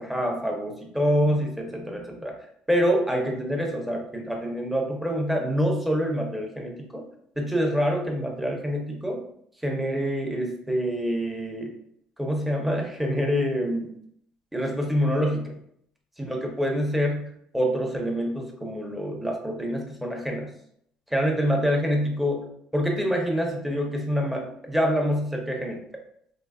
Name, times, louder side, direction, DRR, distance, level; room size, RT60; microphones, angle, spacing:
voice 1, 0.0-2.4 2.7-7.1 7.4-9.2 9.6-11.7 12.2-13.9 14.5-15.6 16.2-20.5 21.1-25.8, equal, 5° right, 1 dB, 0.8 m, -26 dB
3.9 x 3.0 x 2.4 m, 0.69 s
cardioid pair, 105°, 2 cm